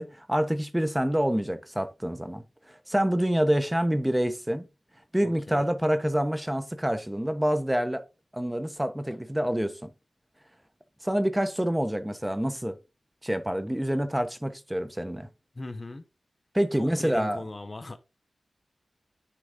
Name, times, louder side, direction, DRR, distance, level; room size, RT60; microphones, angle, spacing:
voice 1, 0.0-2.4 2.7-4.6 5.1-8.0 8.3-9.9 11.0-12.8 13.2-15.3 16.5-17.4, equal, 10° right, 1.0 m, -27 dB
voice 2, 5.2-5.7 15.5-16.0 16.7-18.0, left 2 dB, 35° left, 0.9 m, -39 dB
9.9 x 4.0 x 3.7 m
wide cardioid pair, 85°, 0 cm